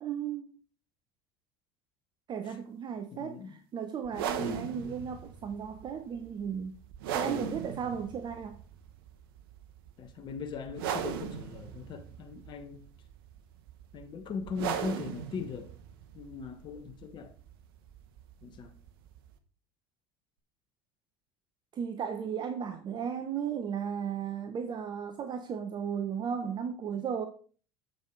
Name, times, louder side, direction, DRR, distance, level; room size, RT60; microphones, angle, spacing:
voice 1, 0.0-0.5 2.3-6.8 7.1-8.6 21.7-27.3, right 7 dB, 35° right, 0.9 m, -35 dB
voice 2, 3.1-3.6 4.4-4.7 7.2-7.6 10.0-12.8 13.9-15.7 16.1-17.3 18.4-18.7, left 5 dB, 40° left, 1.1 m, -40 dB
sound 1, 4.1-19.4, right 8 dB, 70° right, 1.0 m, -40 dB
7.5 x 5.4 x 4.6 m
hypercardioid pair, 75°, 13 cm